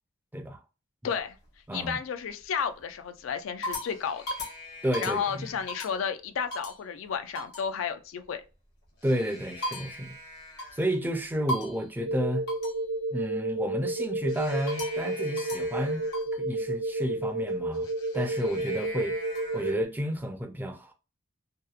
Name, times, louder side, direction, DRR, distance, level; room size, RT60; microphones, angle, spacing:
voice 1, 1.0-1.4 1.7-4.2 5.0-8.4, left 7 dB, 80° left, 0.4 m, -32 dB
sound 1, 1.2-1.9 2.4-2.8 3.3-6.1 6.5-6.8 7.3-7.7 8.8-11.0 11.5-11.9 12.5-12.8 14.3-16.4 17.7-19.7, left 1 dB, 55° left, 0.8 m, -39 dB
voice 2, 4.8-5.5 9.0-10.2 10.7-12.5 13.1-16.0 16.3-17.9 18.1-19.1 19.5-20.9, equal, 10° right, 0.3 m, -31 dB
sound 2, 12.0-19.8, right 2 dB, 65° right, 0.6 m, -31 dB
2.8 x 2.1 x 2.3 m
head